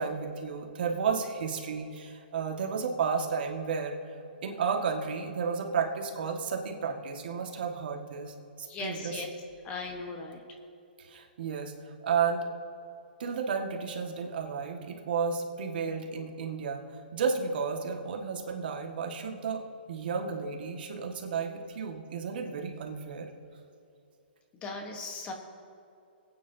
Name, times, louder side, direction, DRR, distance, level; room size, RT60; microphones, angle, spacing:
voice 1, 0.0-3.9 4.4-9.2 11.0-12.5 13.2-16.8 17.1-23.3, right 5 dB, 60° right, 2 dB, 1.7 m, -32 dB
voice 2, 8.7-9.3 9.6-10.4 24.6-25.3, left 3 dB, 20° left, 3 dB, 1.2 m, -38 dB
26.0 x 9.2 x 2.8 m, 2.7 s
hypercardioid pair, 155°, 6 cm